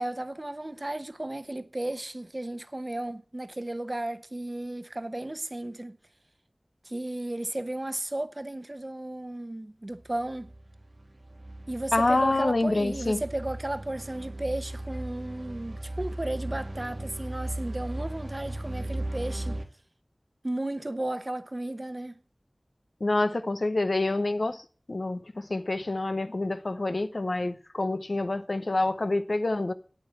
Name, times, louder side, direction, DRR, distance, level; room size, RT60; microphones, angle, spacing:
voice 1, 0.0-6.0 6.8-10.5 11.7-19.6 20.4-22.1, right 1 dB, 45° right, 1.0 m, -34 dB
sound 1, 10.0-19.6, right 1 dB, 85° right, 1.6 m, -37 dB
voice 2, 11.9-13.2 23.0-29.7, left 2 dB, 80° left, 0.8 m, -27 dB
9.2 x 8.7 x 7.6 m
wide cardioid pair, 45°, 0 cm